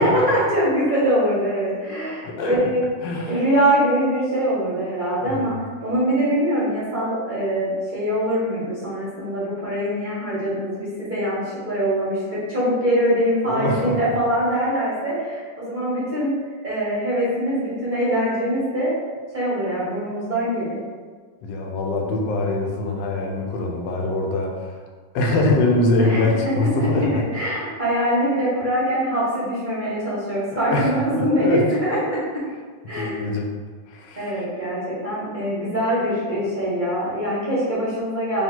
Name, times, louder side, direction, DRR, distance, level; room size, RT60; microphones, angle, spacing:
voice 1, 0.0-2.9 3.2-5.6 5.8-16.3 16.6-18.9 19.3-20.8 26.0-26.2 26.6-32.2 32.9-33.2 34.2-38.4, equal, 35° right, -9 dB, 0.9 m, -23 dB
voice 2, 2.3-2.6 3.0-3.4 5.2-5.5 13.5-14.1 21.4-24.8 25.1-27.2 30.7-31.6 32.9-33.5 33.9-34.3, left 2 dB, 85° left, 1 dB, 1.3 m, -23 dB
3.5 x 2.5 x 4.3 m, 1.5 s
omnidirectional pair, 1.9 m